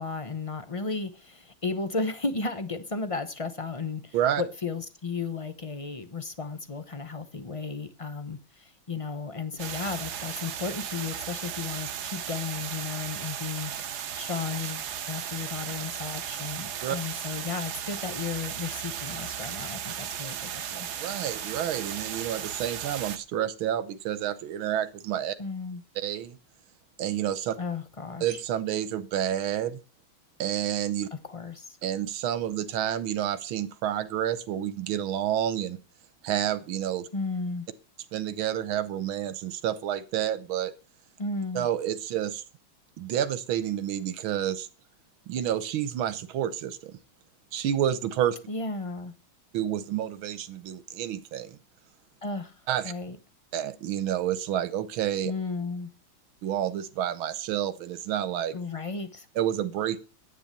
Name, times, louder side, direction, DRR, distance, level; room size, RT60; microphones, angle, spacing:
voice 1, 0.0-20.9 25.4-25.8 27.6-28.4 31.1-31.8 37.1-37.7 41.2-41.7 48.5-49.1 52.2-52.5 52.8-53.2 55.3-55.9 58.5-59.3, left 4 dB, 55° left, 0.3 m, -34 dB
sound 1, 9.6-23.2, right 9 dB, 60° right, 1.3 m, -36 dB
voice 2, 21.0-25.4 26.0-26.4 27.0-27.6 28.2-29.8 30.4-31.1 31.8-35.8 36.2-37.1 38.1-40.7 41.6-42.4 43.0-44.7 45.3-47.0 47.5-48.4 49.5-51.6 52.7-52.9 53.5-55.3 56.4-58.5 59.4-60.0, right 10 dB, 80° right, 1.7 m, -29 dB
10.0 x 8.9 x 6.7 m
omnidirectional pair, 2.2 m